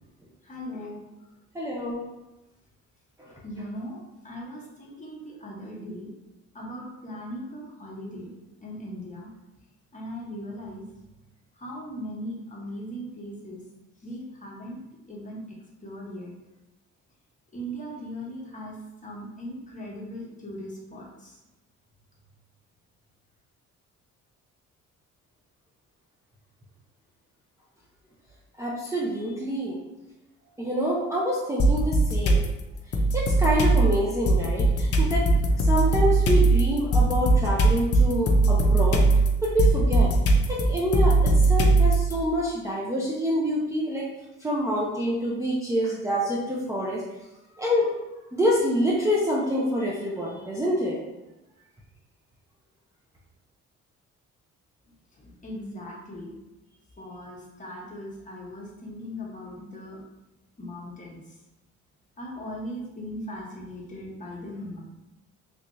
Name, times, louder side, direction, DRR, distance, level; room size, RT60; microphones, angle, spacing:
voice 1, 0.4-1.0 3.4-6.1 6.5-8.3 8.6-9.3 9.9-10.9 11.6-13.6 14.0-14.8 15.1-15.4 15.8-16.3 17.5-21.4 55.2-56.3 57.0-60.0 60.6-61.2 62.2-64.8, equal, 25° left, -4 dB, 1.1 m, -38 dB
voice 2, 1.5-2.0 28.6-29.8 30.6-32.4 33.1-35.3 35.6-39.0 39.4-40.1 40.5-44.1 44.4-47.0 47.6-47.9 48.3-51.0, equal, 10° right, -6 dB, 0.6 m, -26 dB
sound 1, 31.6-32.5 32.9-42.1, right 2 dB, 50° left, 0.6 m, -20 dB
3.4 x 2.6 x 3.1 m, 0.98 s
cardioid pair, 90°, 30 cm